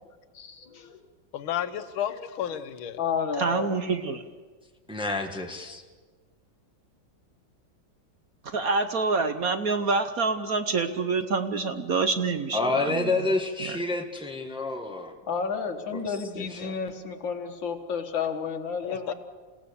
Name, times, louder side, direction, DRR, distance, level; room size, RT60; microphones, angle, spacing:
voice 1, 0.3-1.0 3.0-3.7 15.2-19.1, left 6 dB, 65° left, 6 dB, 2.3 m, -31 dB
voice 2, 1.3-3.0 18.8-19.1, left 10 dB, 90° left, 10 dB, 1.8 m, -32 dB
voice 3, 3.4-4.2 8.5-13.1 13.6-13.8, right 4 dB, 55° right, 8 dB, 1.2 m, -27 dB
voice 4, 4.9-5.8 12.5-15.1 15.9-16.7, left 2 dB, 5° right, 3 dB, 1.2 m, -29 dB
28.0 x 16.5 x 7.0 m, 1.4 s
omnidirectional pair, 2.2 m